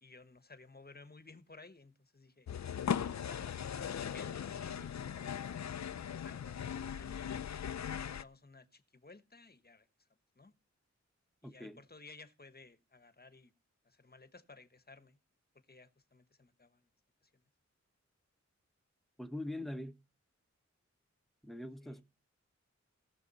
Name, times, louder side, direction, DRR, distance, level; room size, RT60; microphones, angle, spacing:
voice 1, 0.0-2.5 3.1-3.5 3.8-7.3 7.8-9.9 10.4-10.5 11.4-13.5 13.8-15.2 15.7-16.9 17.2-17.4 21.8-22.0, left 3 dB, 35° left, 1.1 m, -57 dB
sound 1, 2.5-8.2, left 8 dB, 70° left, 0.5 m, -39 dB
voice 2, 11.4-11.8 19.2-20.0 21.4-22.0, left 1 dB, ahead, 0.9 m, -42 dB
17.0 x 6.4 x 4.0 m
wide cardioid pair, 50°, 29 cm